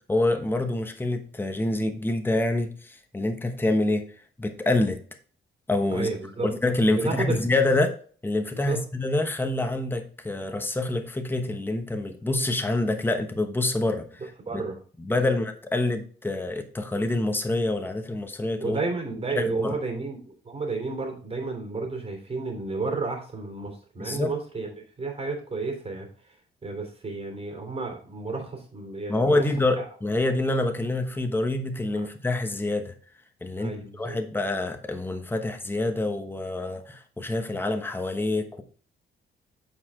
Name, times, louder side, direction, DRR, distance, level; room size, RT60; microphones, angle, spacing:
voice 1, 0.0-4.1 4.4-5.0 5.7-6.1 6.4-8.0 8.2-14.0 15.1-18.8 19.4-19.7 24.0-24.3 29.1-32.9 33.4-38.6, left 2 dB, 10° left, 6 dB, 1.1 m, -26 dB
voice 2, 5.9-6.5 6.8-7.4 8.5-8.8 14.5-14.8 15.1-15.3 18.6-26.1 26.6-29.5 29.8-29.9 31.9-32.1 33.6-34.2, right 3 dB, 30° right, 2 dB, 3.1 m, -32 dB
8.2 x 5.0 x 3.6 m, 0.43 s
cardioid pair, 90°, 20 cm